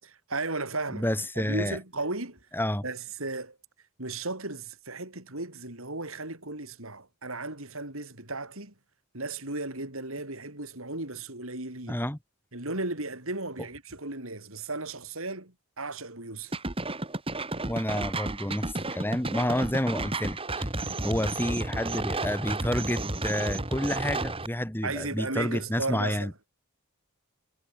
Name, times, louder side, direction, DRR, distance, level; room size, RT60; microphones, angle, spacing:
voice 1, 0.0-1.0 1.4-2.4 2.8-3.6 4.0-8.7 9.1-12.0 12.5-16.5 24.8-26.3, right 2 dB, 65° right, 5.7 m, -35 dB
voice 2, 0.9-1.8 2.5-2.8 11.9-12.2 17.6-20.7 21.0-26.3, left 1 dB, 10° left, 2.8 m, -29 dB
sound 1, 16.5-24.5, right 2 dB, 25° right, 2.8 m, -32 dB
head